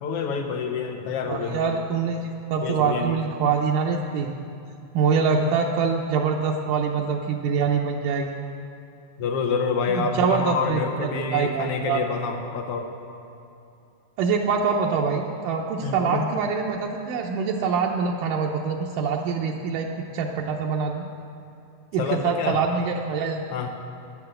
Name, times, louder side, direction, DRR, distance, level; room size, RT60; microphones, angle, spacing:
voice 1, 0.0-1.8 2.6-3.1 9.2-12.9 15.8-16.2 22.0-22.6 23.5-23.7, left 5 dB, 80° left, 4 dB, 1.3 m, -27 dB
voice 2, 1.3-4.3 4.9-8.4 9.9-12.0 14.2-19.9 20.1-21.0 21.9-23.5, right 5 dB, 75° right, -1 dB, 2.2 m, -24 dB
12.0 x 9.8 x 6.7 m, 2.8 s
omnidirectional pair, 3.9 m